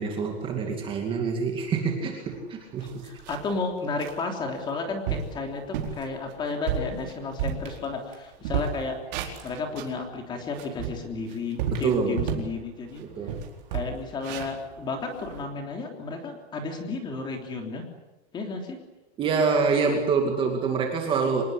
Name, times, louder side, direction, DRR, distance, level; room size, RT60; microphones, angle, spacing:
voice 1, 0.0-3.0 11.7-12.4 13.0-13.4 19.2-21.4, right 5 dB, 15° right, 3 dB, 2.4 m, -26 dB
sound 1, 2.3-2.4 2.8-3.6 4.0-4.2 4.7-4.8 5.1-5.4 5.7-6.0 6.5-8.2 8.4-10.0 10.4-12.5 12.9-13.0 13.3-15.4, right 8 dB, 40° right, 4.4 m, -32 dB
voice 2, 2.8-13.0 13.7-17.8 18.3-18.8, left 3 dB, 15° left, 4 dB, 3.3 m, -33 dB
26.5 x 20.5 x 9.8 m, 1.0 s
supercardioid pair, 180°, 33 cm